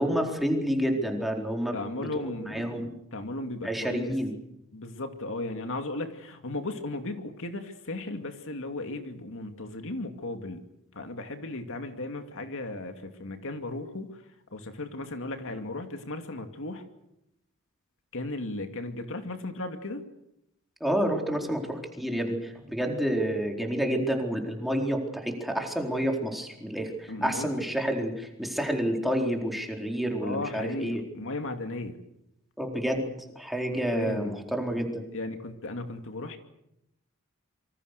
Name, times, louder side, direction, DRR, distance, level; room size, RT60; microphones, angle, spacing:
voice 1, 0.0-2.9 3.6-4.3 20.8-31.0 32.6-35.0, equal, ahead, 1 dB, 4.2 m, -29 dB
voice 2, 1.7-4.1 4.7-10.6 10.9-14.2 14.5-16.8 18.1-20.0 27.1-27.6 30.2-32.0 33.9-34.4 35.1-36.4, left 2 dB, 65° left, 6 dB, 2.5 m, -36 dB
27.0 x 25.0 x 6.7 m, 0.81 s
head